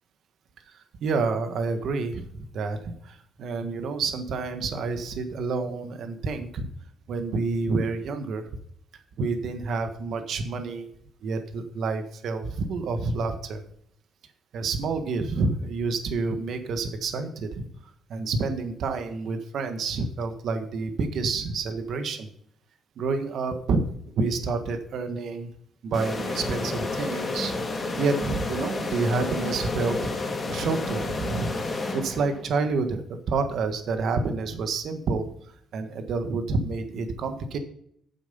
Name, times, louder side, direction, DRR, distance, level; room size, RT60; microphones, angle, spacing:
voice 1, 0.7-6.7 7.1-8.4 9.2-10.9 11.2-13.6 14.5-22.3 23.0-23.8 24.2-25.5 25.8-27.6 28.0-31.5 31.9-35.3 35.7-37.6, right 4 dB, 70° right, 7 dB, 1.4 m, -28 dB
sound 1, 25.9-32.6, left 3 dB, 35° left, 2.3 m, -31 dB
9.7 x 7.3 x 5.5 m, 0.66 s
cardioid pair, 90°, 0 cm